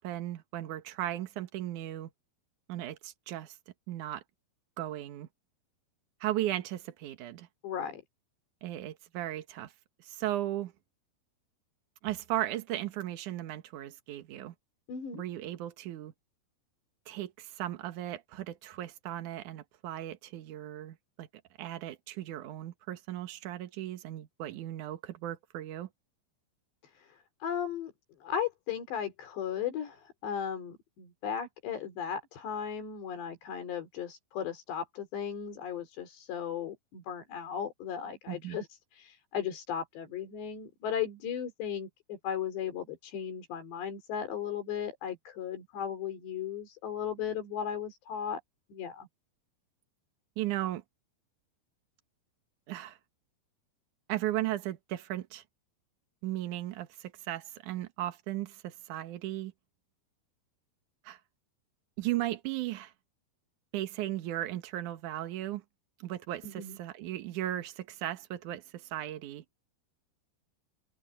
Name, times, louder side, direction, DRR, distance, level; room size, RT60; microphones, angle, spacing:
voice 1, 0.0-2.1 2.7-3.6 3.9-4.2 4.8-5.3 6.2-7.5 8.6-9.7 10.0-10.7 12.0-14.5 15.1-16.1 17.1-21.3 21.6-25.9 38.3-38.6 50.4-50.8 52.7-53.0 54.1-55.4 56.2-59.5 61.0-61.2 62.0-62.9 63.7-65.6 66.0-69.4, right 14 dB, 60° right, 2.2 m, -36 dB
voice 2, 7.6-8.0 14.9-15.2 26.9-27.9 28.2-48.4 48.7-49.1 66.4-66.8, left 8 dB, 70° left, 5.9 m, -36 dB
omnidirectional pair, 5.1 m